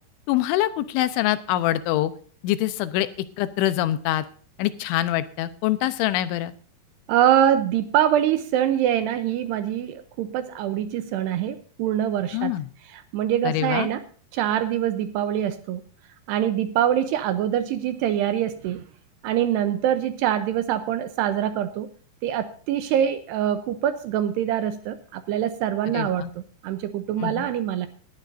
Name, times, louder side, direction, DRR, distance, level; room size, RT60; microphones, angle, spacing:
voice 1, 0.3-2.1 2.4-3.1 3.4-4.2 4.6-6.5 12.3-12.7 13.4-13.9 25.9-26.3 27.2-27.5, left 14 dB, 85° left, 13 dB, 3.3 m, -24 dB
voice 2, 7.1-12.5 12.9-14.0 14.3-15.8 16.3-18.8 19.2-21.9 22.2-26.3 26.6-27.9, right 10 dB, 80° right, 10 dB, 2.6 m, -24 dB
19.5 x 11.5 x 2.6 m, 0.43 s
omnidirectional pair, 5.4 m